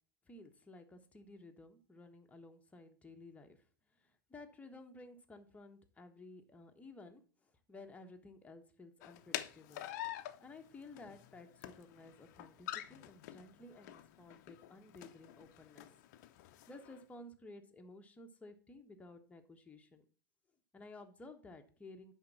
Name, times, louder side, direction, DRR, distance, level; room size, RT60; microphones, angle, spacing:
voice 1, 0.2-3.6 3.9-9.9 10.4-15.9 16.7-20.0 20.7-22.1, left 2 dB, 15° left, 4 dB, 1.2 m, -55 dB
sound 1, 9.0-17.0, left 13 dB, 55° left, 0.6 m, -47 dB
10.0 x 3.7 x 5.8 m, 0.41 s
figure-of-eight pair, 90°, 11 cm